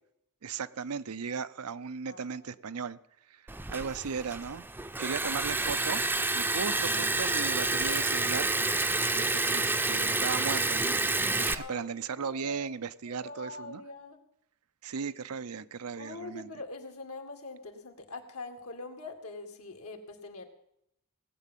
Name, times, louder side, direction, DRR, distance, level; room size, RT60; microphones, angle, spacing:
voice 1, 0.4-3.0 3.3-4.6 5.0-6.0 6.3-11.0 11.3-13.8 14.8-16.5, right 6 dB, 90° right, 0.6 m, -37 dB
voice 2, 2.0-2.4 5.2-5.3 11.5-12.8 13.1-14.2 16.0-20.5, left 3 dB, 80° left, 2.1 m, -44 dB
Liquid, 3.5-11.5, right 3 dB, 10° right, 0.5 m, -29 dB
18.0 x 8.3 x 7.4 m
head